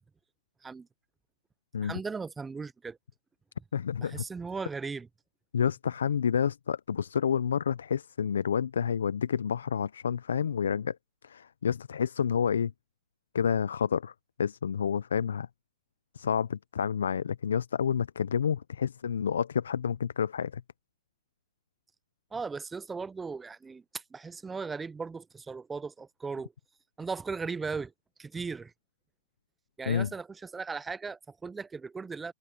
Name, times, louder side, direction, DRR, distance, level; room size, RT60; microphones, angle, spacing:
voice 1, 1.8-3.0 4.0-5.1 22.3-26.5 27.0-27.9 28.2-28.7 29.8-32.3, right 4 dB, 10° right, 0.4 m, -37 dB
voice 2, 3.7-4.2 5.5-11.0 11.2-12.7 13.3-14.1 14.4-15.5 16.1-20.6 29.9-30.1, left 7 dB, 85° left, 0.4 m, -29 dB
hypercardioid pair, 145°, 0 cm